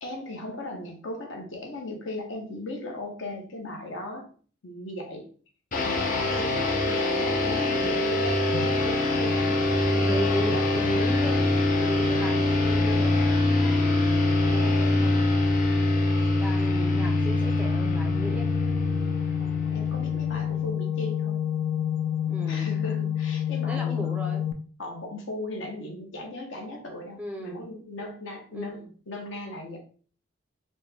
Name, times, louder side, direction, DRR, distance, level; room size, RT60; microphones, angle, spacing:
voice 1, 0.0-4.3 4.6-5.3 5.8-11.1 19.4-21.5 22.5-24.2 24.8-29.8, left 1 dB, 60° left, 2 dB, 0.9 m, -37 dB
sound 1, 5.7-20.5, left 1 dB, 40° left, 0.6 m, -24 dB
voice 2, 7.7-8.0 10.0-11.4 11.8-15.2 16.4-18.5 22.3-22.8 23.7-24.5 27.2-27.7 28.5-28.9, equal, 5° right, 2 dB, 0.4 m, -36 dB
sound 2, 8.5-24.5, left 10 dB, 90° left, 0.4 m, -31 dB
4.2 x 2.1 x 3.4 m, 0.42 s
head